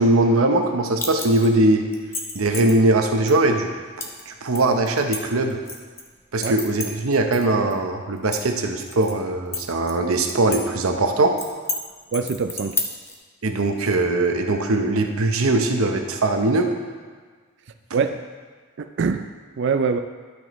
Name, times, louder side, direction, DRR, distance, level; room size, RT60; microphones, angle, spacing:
voice 1, 0.0-1.9 2.3-3.7 4.3-5.6 6.3-11.4 13.4-16.7, right 2 dB, 75° right, 4 dB, 0.8 m, -20 dB
sound 1, 1.0-1.5 1.9-2.7 3.3-3.4 4.0-4.2 4.5-6.0 6.4-7.4 7.7-7.8 8.2-9.1 9.5-10.6 10.9-11.0 11.4-11.8 12.1-13.1, left 3 dB, 10° left, 0.6 m, -30 dB
voice 2, 12.1-12.8 17.9-18.2 18.8-19.2 19.6-20.0, right 5 dB, 55° right, 7 dB, 0.4 m, -23 dB
12.0 x 6.0 x 3.1 m, 1.5 s
head